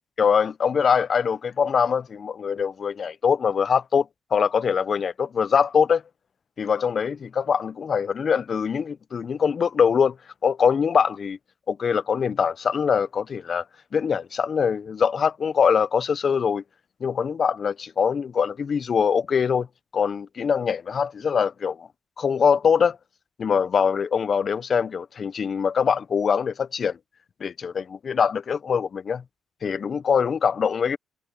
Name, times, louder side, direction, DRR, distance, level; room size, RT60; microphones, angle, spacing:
voice 1, 0.2-4.1 4.3-6.0 6.6-10.2 10.4-11.4 11.7-13.6 13.9-16.6 17.0-19.7 19.9-21.9 22.2-23.0 23.4-27.0 27.4-29.2 29.6-31.0, left 6 dB, 45° left, 0.4 m, -23 dB
cardioid pair, 90°, 0 cm